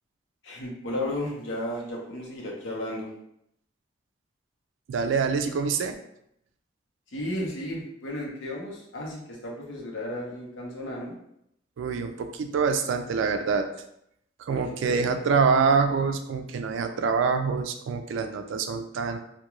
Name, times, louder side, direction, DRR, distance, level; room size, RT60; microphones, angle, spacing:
voice 1, 0.4-3.1 7.1-11.2 14.5-15.1, left 1 dB, 90° left, -2 dB, 0.7 m, -34 dB
voice 2, 4.9-6.0 11.8-13.7 14.5-19.2, right 5 dB, 85° right, 7 dB, 0.3 m, -25 dB
2.3 x 2.2 x 2.9 m, 0.76 s
head